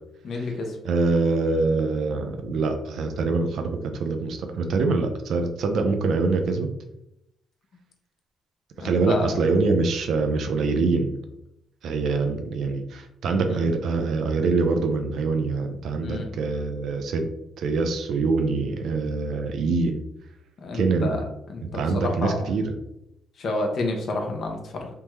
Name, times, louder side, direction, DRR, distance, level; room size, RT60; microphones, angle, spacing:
voice 1, 0.2-0.8 8.8-9.3 13.5-13.6 16.0-16.3 20.6-21.2 21.5-22.4 23.4-24.9, left 2 dB, 60° left, 2 dB, 0.8 m, -29 dB
voice 2, 0.8-6.7 8.8-11.2 11.8-17.3 17.6-20.0 20.7-21.2 21.6-22.8, right 3 dB, 70° right, 6 dB, 0.5 m, -24 dB
3.4 x 2.1 x 3.0 m, 0.82 s
cardioid pair, 90°, 0 cm